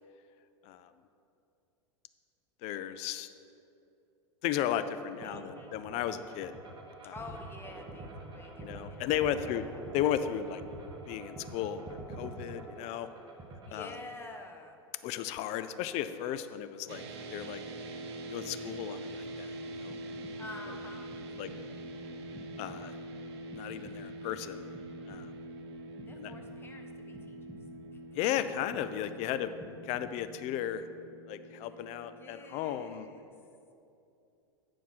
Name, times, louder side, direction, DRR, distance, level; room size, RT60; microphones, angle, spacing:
voice 1, 2.6-3.3 4.4-6.5 7.0-7.1 8.6-9.7 9.9-10.6 11.1-13.1 13.7-14.0 15.0-17.0 17.3-17.6 18.3-20.0 21.4-21.5 22.6-22.9 23.5-24.7 25.1-25.3 26.2-26.3 28.1-29.5 29.8-30.9 31.3-33.1, left 10 dB, 50° left, 11 dB, 0.5 m, -35 dB
voice 2, 5.2-5.7 7.1-9.8 13.6-14.8 20.4-21.5 26.1-27.4 27.9-28.1 28.9-29.5 31.6-33.3, left 2 dB, 15° left, 3 dB, 1.1 m, -49 dB
sound 1, 5.2-14.1, right 2 dB, 30° right, 1.4 m, -46 dB
sound 2, 16.9-33.2, right 1 dB, 65° right, 0.9 m, -44 dB
sound 3, 19.9-20.7 21.1-21.8 22.4-23.1 23.5-24.3 24.7-25.6 26.0-26.8 27.1-27.9 28.4-29.2 29.6-30.4, right 1 dB, ahead, 1.3 m, -53 dB
10.0 x 4.5 x 6.1 m, 2.7 s
hypercardioid pair, 90°, 15 cm